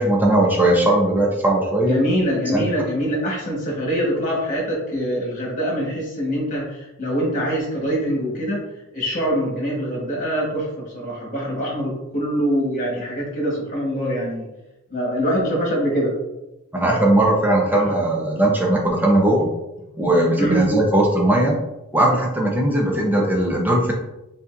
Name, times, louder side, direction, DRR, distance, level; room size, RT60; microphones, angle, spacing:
voice 1, 0.0-2.0 2.5-2.6 16.7-19.5 20.0-21.6 21.9-23.9, right 1 dB, 10° right, -1 dB, 0.5 m, -18 dB
voice 2, 1.9-8.6 8.9-10.7 10.9-14.5 14.9-16.1 17.8-17.9 20.4-20.6, equal, 35° left, -2 dB, 1.3 m, -24 dB
5.2 x 2.6 x 2.5 m, 0.97 s
head